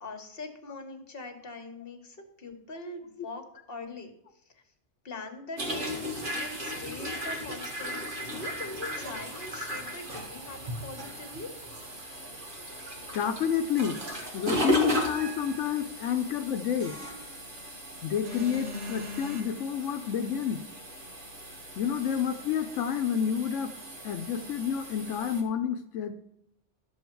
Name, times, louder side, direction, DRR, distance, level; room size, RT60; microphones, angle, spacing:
voice 1, 0.0-4.1 5.0-6.0 6.4-8.0 8.3-11.5, left 3 dB, 50° left, 6 dB, 1.6 m, -42 dB
sound 1, 5.6-25.4, equal, 45° right, 1.7 m, -36 dB
sound 2, 8.9-10.6 11.0-11.9 13.8-14.4 15.0-15.8 16.8-17.7 18.2-19.4, equal, 80° right, 2.0 m, -43 dB
voice 2, 13.1-14.0 14.3-17.0 18.0-20.6 21.8-23.7 24.0-26.1, left 8 dB, 90° left, 7 dB, 1.0 m, -29 dB
12.0 x 7.3 x 4.5 m, 0.81 s
omnidirectional pair, 1.2 m